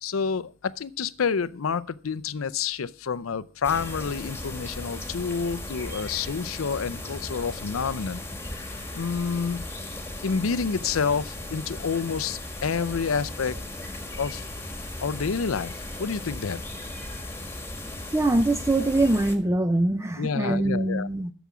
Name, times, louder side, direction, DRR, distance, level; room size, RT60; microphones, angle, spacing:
voice 1, 0.0-8.2 8.5-9.7 10.2-13.6 14.2-14.5 15.0-16.6 20.2-21.1, left 5 dB, 80° left, 0.6 m, -28 dB
sound 1, 3.6-19.4, left 1 dB, 10° left, 1.5 m, -37 dB
voice 2, 18.1-21.3, right 2 dB, 15° right, 0.5 m, -23 dB
12.0 x 7.0 x 6.1 m
head